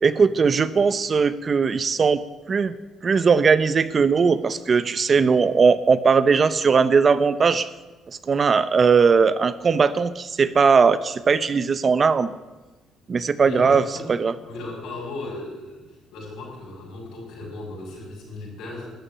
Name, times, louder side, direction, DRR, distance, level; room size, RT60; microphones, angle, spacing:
voice 1, 0.0-2.2 2.5-2.7 3.0-7.7 8.3-12.3 13.1-13.8 14.1-14.3, right 5 dB, 40° right, 14 dB, 0.7 m, -19 dB
voice 2, 13.4-14.1 14.4-18.9, left 2 dB, 85° left, -2 dB, 6.4 m, -36 dB
13.0 x 8.8 x 9.9 m, 1.2 s
cardioid pair, 105°, 0 cm